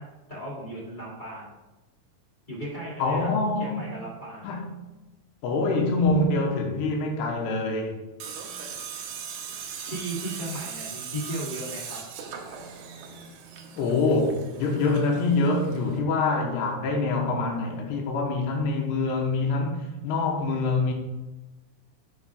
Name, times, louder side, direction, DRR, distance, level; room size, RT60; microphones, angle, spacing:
voice 1, 0.0-1.5 2.5-3.3 3.6-4.5 9.8-12.0, right 1 dB, 20° left, -7 dB, 1.3 m, -36 dB
voice 2, 3.0-3.8 4.4-4.6 5.4-8.0 13.8-20.9, left 3 dB, 80° left, 1 dB, 3.2 m, -25 dB
Tools, 8.2-16.0, right 6 dB, 80° right, 1.7 m, -39 dB
11.0 x 7.1 x 2.4 m, 1.1 s
omnidirectional pair, 4.7 m